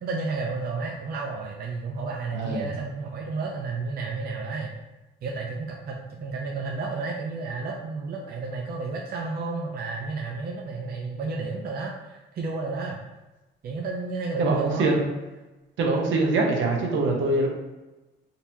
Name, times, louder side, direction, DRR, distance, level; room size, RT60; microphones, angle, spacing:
voice 1, 0.0-4.7 5.2-13.0 13.6-15.0, right 3 dB, 50° right, -1 dB, 0.5 m, -32 dB
voice 2, 2.3-2.7 14.4-15.1 15.8-17.5, right 2 dB, 75° right, 0 dB, 0.8 m, -23 dB
3.9 x 2.8 x 2.7 m, 1.1 s
cardioid pair, 90°, 20 cm